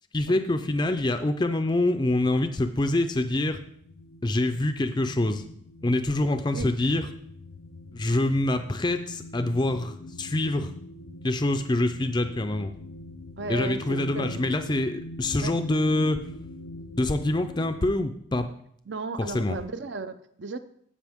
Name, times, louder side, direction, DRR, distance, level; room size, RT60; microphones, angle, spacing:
voice 1, 0.1-3.6 4.2-5.4 5.8-7.1 7.9-10.7 11.2-12.7 13.5-16.2 17.0-18.5 19.3-19.6, left 2 dB, 20° left, 7 dB, 0.4 m, -25 dB
sound 1, 3.3-17.9, left 2 dB, 85° left, 0.7 m, -43 dB
voice 2, 13.4-14.5 15.4-15.5 18.9-20.6, right 3 dB, 55° right, 11 dB, 0.6 m, -35 dB
15.5 x 5.5 x 3.6 m, 0.64 s
head